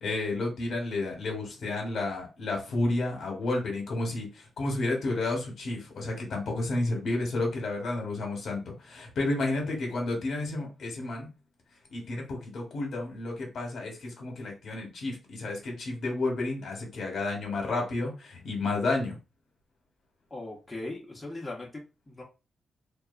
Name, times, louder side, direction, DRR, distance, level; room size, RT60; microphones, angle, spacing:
voice 1, 0.0-11.3 11.9-19.2, left 2 dB, 70° left, 1 dB, 1.0 m, -31 dB
voice 2, 20.3-21.7 22.1-22.2, left 2 dB, 20° left, -2 dB, 0.8 m, -38 dB
2.7 x 2.3 x 2.4 m, 0.29 s
cardioid pair, 100°, 0 cm